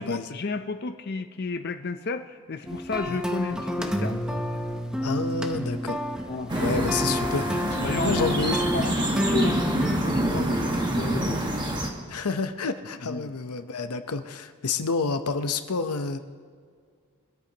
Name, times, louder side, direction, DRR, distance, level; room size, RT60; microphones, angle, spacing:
voice 1, 0.0-4.4 6.3-6.9 7.8-8.4 8.7-11.5 13.1-13.3, left 4 dB, 45° left, 7 dB, 0.5 m, -33 dB
sound 1, 2.7-10.0, equal, 5° right, 0.7 m, -30 dB
voice 2, 5.0-6.0 6.6-7.5 7.7-8.6 12.1-16.2, left 4 dB, 85° left, 8 dB, 0.8 m, -29 dB
sound 2, 6.5-11.9, right 1 dB, 20° right, 1.4 m, -26 dB
24.0 x 13.5 x 2.9 m, 2.1 s
head